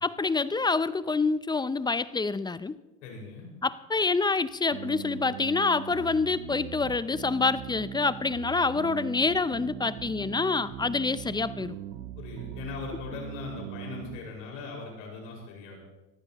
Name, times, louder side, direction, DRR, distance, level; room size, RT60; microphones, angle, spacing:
voice 1, 0.0-2.8 3.6-11.8, left 4 dB, 10° left, 16 dB, 0.5 m, -27 dB
voice 2, 3.0-3.5 12.2-15.8, left 4 dB, 90° left, -1 dB, 5.3 m, -40 dB
sound 1, 4.7-14.2, right 11 dB, 75° right, 1.1 m, -40 dB
22.5 x 15.0 x 3.0 m, 1.1 s
supercardioid pair, 95°, 36 cm